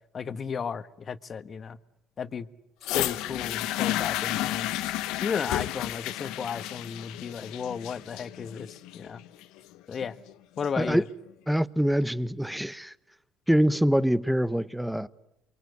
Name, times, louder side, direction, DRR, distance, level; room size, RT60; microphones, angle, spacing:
voice 1, 0.1-1.8 2.2-2.5 2.9-4.7 5.2-9.2 9.9-10.1 10.6-11.0, left 6 dB, 40° left, 1.4 m, -34 dB
sound 1, 2.8-10.8 11.6-11.7, left 15 dB, 75° left, 1.0 m, -32 dB
voice 2, 11.5-12.9 13.5-15.1, equal, 5° right, 1.0 m, -24 dB
29.0 x 24.0 x 8.1 m
supercardioid pair, 80°, 0 cm